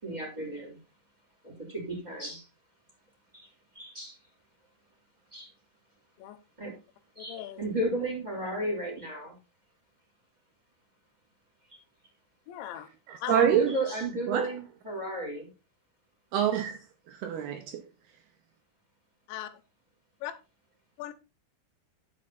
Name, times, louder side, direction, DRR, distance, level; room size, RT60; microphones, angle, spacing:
voice 1, 0.0-0.8 1.4-2.4 3.3-3.5 3.7-4.1 5.3-5.5 6.6-6.7 7.2-9.4 13.3-15.5, right 1 dB, 10° right, 3.4 m, -34 dB
voice 2, 7.2-7.6 12.5-12.9 13.2-13.5 19.3-19.5 20.2-20.3 21.0-21.1, left 11 dB, 85° left, 3.2 m, -38 dB
voice 3, 13.1-13.7 14.3-14.5 16.3-16.8 17.1-17.8, right 8 dB, 70° right, 2.6 m, -26 dB
10.0 x 6.6 x 4.2 m
omnidirectional pair, 5.2 m